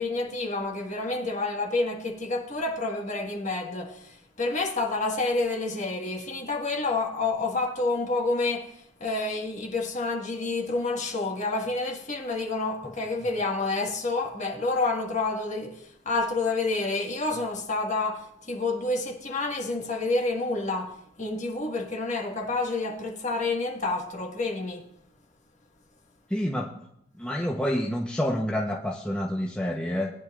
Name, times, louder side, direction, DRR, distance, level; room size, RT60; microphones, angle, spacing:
voice 1, 0.0-24.9, left 3 dB, 35° left, 1.6 m, -29 dB
voice 2, 26.3-26.8 27.2-30.1, left 1 dB, 5° left, 0.8 m, -28 dB
19.0 x 10.0 x 2.4 m
head